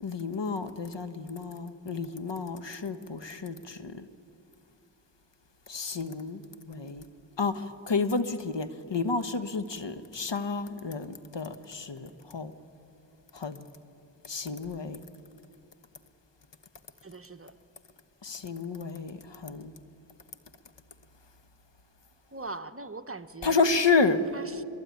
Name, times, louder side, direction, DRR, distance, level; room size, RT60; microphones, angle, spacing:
voice 1, 0.0-4.1 5.7-7.0 7.4-12.5 13.3-13.6 14.2-15.0 18.2-19.7 23.4-24.2, left 4 dB, 60° left, 1.4 m, -30 dB
voice 2, 17.0-17.6 22.3-23.7 24.3-24.6, right 3 dB, 30° right, 1.0 m, -41 dB
23.0 x 22.5 x 9.5 m
cardioid pair, 40°, 48 cm